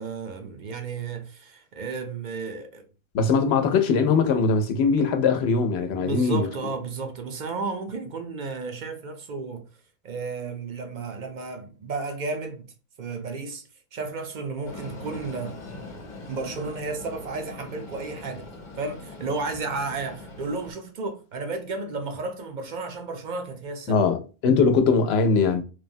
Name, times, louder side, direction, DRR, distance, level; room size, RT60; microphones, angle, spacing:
voice 1, 0.0-2.8 6.0-9.6 10.0-12.7 13.0-15.6 16.3-18.5 18.8-24.0, right 4 dB, 55° right, 0.6 m, -33 dB
voice 2, 3.1-6.5 23.9-25.6, left 5 dB, 90° left, 0.8 m, -21 dB
Train, 14.6-20.7, left 3 dB, 50° left, 0.8 m, -42 dB
3.2 x 2.1 x 2.5 m
omnidirectional pair, 1.0 m